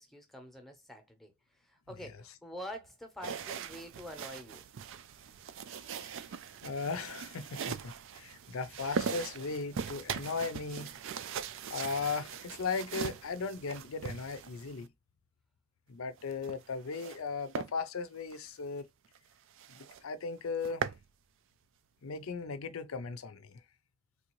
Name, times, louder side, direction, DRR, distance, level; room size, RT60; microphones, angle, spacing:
voice 1, 0.0-1.3 1.6-4.6, equal, ahead, 0.8 m, -46 dB
sound 1, 3.2-14.9 16.2-17.2 17.5-17.7 18.2-18.4 18.8-18.9 19.2-19.3 19.6-20.0 20.4-21.0, right 7 dB, 60° right, 0.4 m, -40 dB
voice 2, 5.8-6.3 6.6-11.0 11.7-14.9 15.9-18.9 19.7-20.8 22.0-23.6, left 4 dB, 65° left, 0.5 m, -37 dB
3.4 x 2.6 x 3.0 m
head